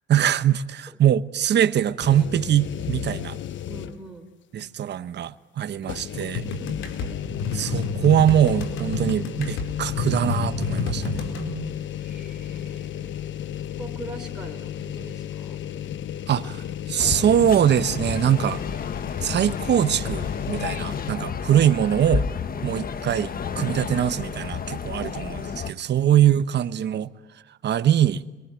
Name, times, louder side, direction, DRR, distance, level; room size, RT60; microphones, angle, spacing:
voice 1, 0.1-3.4 4.5-6.4 7.5-11.2 16.3-18.6 19.2-22.3 22.6-27.1 27.6-28.2, right 10 dB, 60° right, 1.1 m, -22 dB
sound 1, 2.0-4.2 4.6-4.7 5.8-21.1, left 10 dB, 70° left, 1.1 m, -34 dB
voice 2, 3.6-4.3 6.7-6.9 12.0-13.2 13.8-15.6 22.6-22.7, right 1 dB, 5° right, 4.7 m, -42 dB
sound 2, 6.3-11.5, left 4 dB, 90° left, 4.3 m, -29 dB
sound 3, 17.0-25.7, left 6 dB, 45° left, 1.5 m, -31 dB
27.0 x 22.5 x 9.1 m
cardioid pair, 90°, 20 cm